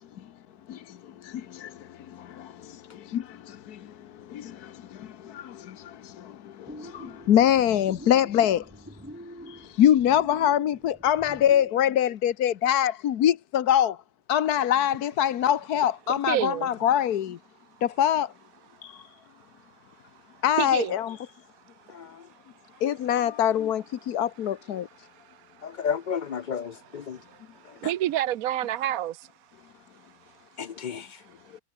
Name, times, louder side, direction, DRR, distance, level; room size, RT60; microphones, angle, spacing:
sound 1, 6.7-11.7, equal, 5° right, 7.5 m, -45 dB
voice 1, 6.9-8.6 9.8-13.9 14.3-17.4 18.0-18.3 20.4-21.2 22.8-24.8, left 10 dB, 85° left, 1.5 m, -23 dB
voice 2, 16.1-16.7 20.6-20.9 24.8-25.9 26.6-29.3, right 12 dB, 70° right, 1.1 m, -30 dB
voice 3, 25.6-27.2 30.6-31.1, left 7 dB, 55° left, 0.5 m, -31 dB
omnidirectional pair, 1.6 m